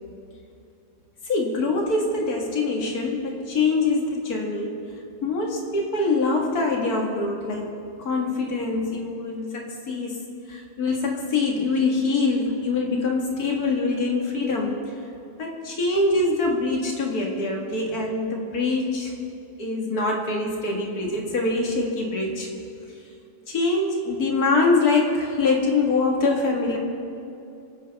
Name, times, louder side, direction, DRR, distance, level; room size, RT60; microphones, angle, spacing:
voice 1, 1.3-4.8 5.2-7.7 8.0-10.2 10.5-14.7 15.4-19.1 19.6-22.5 23.5-26.8, left 3 dB, 50° left, 0 dB, 2.2 m, -24 dB
26.0 x 9.4 x 3.5 m, 2.6 s
omnidirectional pair, 2.1 m